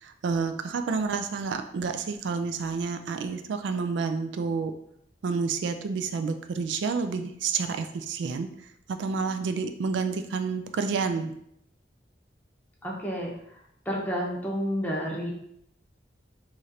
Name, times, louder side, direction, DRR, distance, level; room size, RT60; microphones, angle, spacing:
voice 1, 0.0-4.7 5.2-8.5 9.0-11.3, right 5 dB, 80° right, 8 dB, 0.3 m, -29 dB
voice 2, 12.8-13.6 13.9-15.3, equal, 10° left, -3 dB, 0.7 m, -30 dB
3.1 x 2.5 x 4.1 m, 0.73 s
head